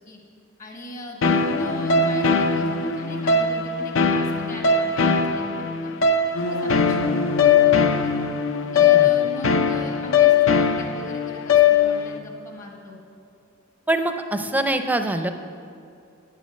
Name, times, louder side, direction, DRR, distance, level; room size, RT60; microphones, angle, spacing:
voice 1, 0.6-5.9 6.4-8.1 8.7-13.0 14.4-14.5, left 1 dB, 40° left, 0 dB, 1.4 m, -39 dB
sound 1, 1.2-12.2, left 5 dB, 70° left, 0.6 m, -20 dB
voice 2, 13.9-15.3, right 1 dB, 10° right, 7 dB, 0.5 m, -24 dB
8.4 x 8.3 x 6.5 m, 2.4 s
head